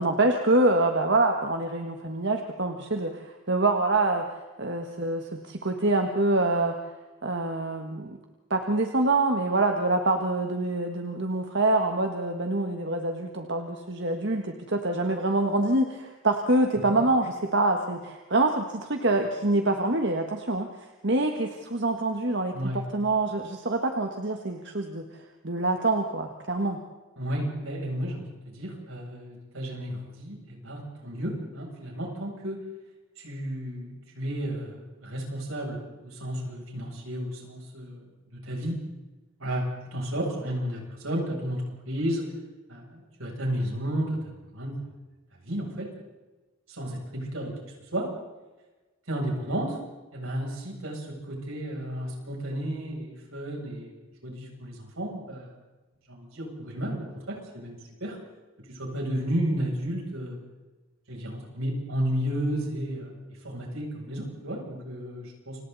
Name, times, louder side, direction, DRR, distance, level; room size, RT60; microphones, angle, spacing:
voice 1, 0.0-4.3 4.6-6.7 7.2-8.1 8.5-20.7 21.0-25.0 25.4-26.8, right 2 dB, 55° right, 4 dB, 1.6 m, -25 dB
voice 2, 22.5-22.8 27.2-32.6 33.2-38.0 38.3-38.8 39.4-42.3 42.7-44.2 44.5-44.8 45.4-45.9 46.7-47.5 47.9-48.1 49.1-49.8 50.1-53.9 54.2-55.5 56.1-58.2 58.7-60.4 61.1-65.6, right 1 dB, 80° right, -1 dB, 8.0 m, -32 dB
29.5 x 26.0 x 4.2 m, 1.2 s
head